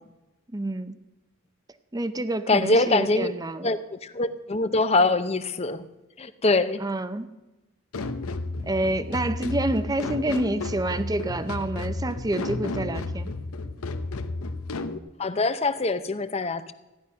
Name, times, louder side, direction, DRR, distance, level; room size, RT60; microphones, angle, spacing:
voice 1, 0.5-1.0 1.9-3.7 6.8-7.3 8.7-13.3, right 1 dB, 20° right, 12 dB, 0.6 m, -28 dB
voice 2, 2.5-3.3 3.6-5.9 6.2-6.8 15.2-16.7, left 2 dB, 30° left, 12 dB, 0.7 m, -24 dB
sound 1, 7.9-15.0, left 2 dB, 85° left, 0.8 m, -32 dB
15.0 x 11.0 x 5.6 m, 1.1 s
head